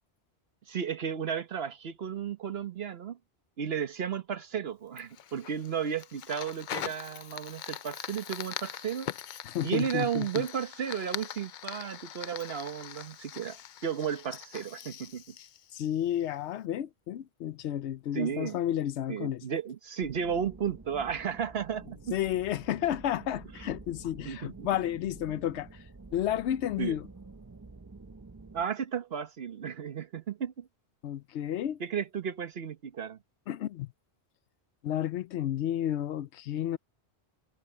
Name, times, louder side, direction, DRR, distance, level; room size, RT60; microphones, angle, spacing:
voice 1, 0.7-3.2 3.6-9.1 9.6-13.6 13.8-15.3 18.1-18.6 19.1-22.2 24.2-24.7 26.8-27.0 28.5-30.7 31.8-33.2, right 8 dB, 65° right, 1.2 m, -34 dB
Fire, 5.0-16.4, left 10 dB, 55° left, 0.6 m, -42 dB
voice 2, 9.4-10.4 15.7-19.4 22.1-25.7 26.1-27.1 31.0-31.8 33.5-33.9 34.8-36.8, left 11 dB, 85° left, 0.9 m, -31 dB
sound 1, 20.0-28.7, right 3 dB, 20° right, 0.6 m, -49 dB
omnidirectional pair, 1.1 m